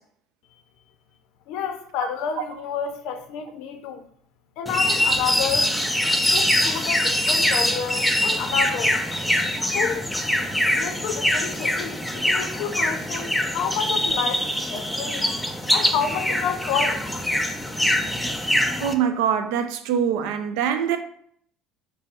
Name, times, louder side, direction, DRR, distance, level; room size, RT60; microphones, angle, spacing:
voice 1, 1.5-4.0 4.6-5.7 6.3-9.0 9.7-10.1 10.7-15.3 15.7-17.0, left 7 dB, 70° left, 0.5 m, -29 dB
sound 1, 4.7-18.9, left 1 dB, 5° left, 0.3 m, -23 dB
voice 2, 18.8-21.0, right 8 dB, 80° right, 0.4 m, -23 dB
3.4 x 2.0 x 4.1 m
cardioid pair, 145°, 0 cm